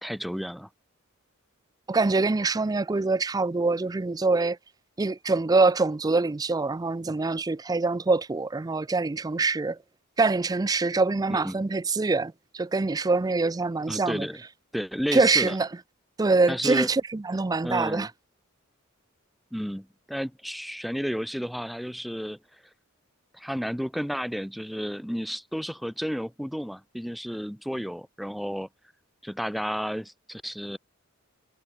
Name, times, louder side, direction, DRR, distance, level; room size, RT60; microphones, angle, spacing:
voice 1, 0.0-0.7 11.3-11.6 13.9-14.4 14.7-15.6 16.5-16.9 17.6-18.1 19.5-22.4 23.3-28.7 29.2-30.8, equal, ahead, 1.2 m, -32 dB
voice 2, 1.9-4.6 5.0-9.8 10.2-14.3 15.1-15.7 16.2-18.1, right 3 dB, 20° right, 0.4 m, -24 dB
head